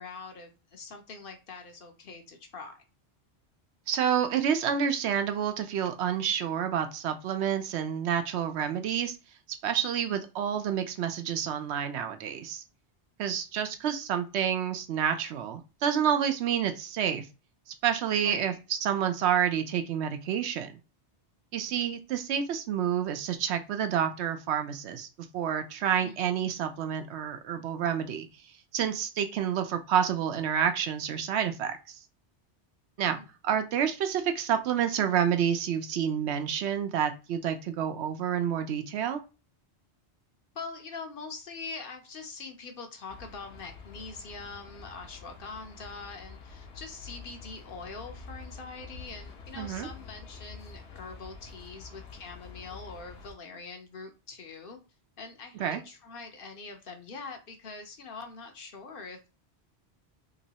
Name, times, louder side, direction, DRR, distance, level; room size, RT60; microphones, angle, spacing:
voice 1, 0.0-2.8 18.2-18.6 26.0-26.4 33.0-33.3 40.5-54.8 55.2-59.3, left 4 dB, 60° left, 5 dB, 0.8 m, -43 dB
voice 2, 3.9-9.2 9.6-12.6 13.2-17.3 17.8-20.8 21.5-25.1 25.3-28.3 28.7-32.0 33.0-39.2 49.6-49.9 55.6-55.8, right 8 dB, 80° right, 8 dB, 0.8 m, -29 dB
sound 1, 43.1-53.3, left 4 dB, 75° left, 1.1 m, -47 dB
3.0 x 2.9 x 2.8 m, 0.31 s
omnidirectional pair, 1.1 m